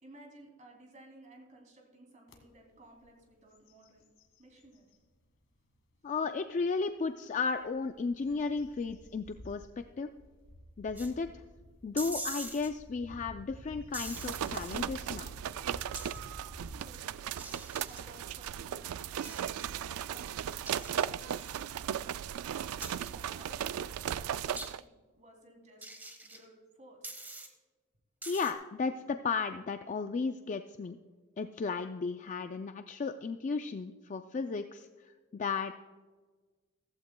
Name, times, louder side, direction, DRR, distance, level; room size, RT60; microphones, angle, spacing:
voice 1, 0.0-4.0 4.4-4.9 16.8-22.1 22.6-24.4 24.8-24.9 25.2-25.9 26.2-27.2, right 1 dB, 35° right, 1 dB, 2.8 m, -57 dB
sound 1, 2.3-2.4 2.9-3.2 3.5-5.0 5.6-5.7 7.4-16.8, left 1 dB, 60° left, 1.8 m, -51 dB
voice 2, 6.0-10.1 10.8-11.4 11.8-15.4 28.3-31.0 31.4-35.7, left 4 dB, 35° left, 8 dB, 0.3 m, -34 dB
sound 2, 11.0-11.1 12.0-12.7 13.9-14.8 15.9-16.3 17.4-18.0 19.2-19.7 20.7-21.6 22.8-23.5 24.6-24.7 25.8-26.4 27.0-27.5 28.2-28.5, right 2 dB, 10° right, 1.2 m, -43 dB
sound 3, 14.0-24.8, right 9 dB, 80° right, 0.3 m, -37 dB
15.5 x 15.0 x 2.2 m, 1.4 s
head